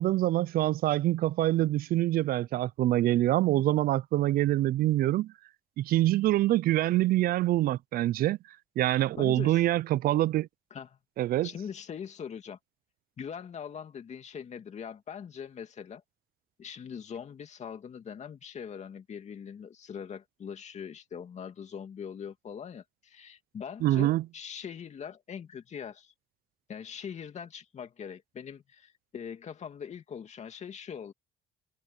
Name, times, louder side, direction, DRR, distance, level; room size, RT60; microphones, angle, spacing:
voice 1, 0.0-5.3 5.8-8.4 8.8-10.5 11.2-11.5 23.8-24.2, right 15 dB, 60° right, 0.4 m, -25 dB
voice 2, 9.1-9.6 10.7-11.0 11.4-12.6 13.2-16.0 16.6-26.1 26.7-31.1, left 7 dB, 40° left, 2.5 m, -42 dB
cardioid pair, 110°, 17 cm